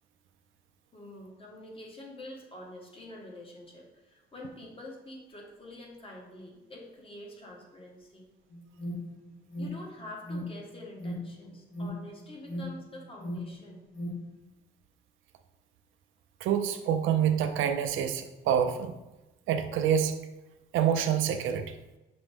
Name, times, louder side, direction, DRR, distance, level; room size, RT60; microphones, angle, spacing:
voice 1, 0.9-8.3 9.6-13.8, left 1 dB, 30° left, -1 dB, 1.1 m, -46 dB
Alarm, 8.5-14.4, left 1 dB, 70° left, 1.0 m, -39 dB
voice 2, 16.4-18.9 19.5-20.2 20.7-21.7, right 9 dB, 80° right, 7 dB, 0.4 m, -27 dB
6.0 x 2.1 x 3.3 m, 1.0 s
cardioid pair, 90°, 20 cm